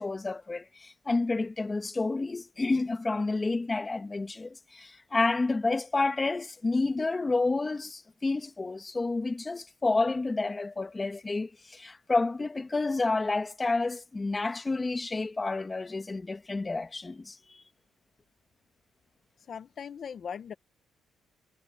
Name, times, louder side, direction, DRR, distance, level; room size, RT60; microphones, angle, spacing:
voice 1, 0.0-17.4, left 3 dB, 25° left, 1.7 m, -29 dB
voice 2, 19.5-20.5, left 7 dB, 55° left, 1.0 m, -39 dB
cardioid pair, 90°, 0 cm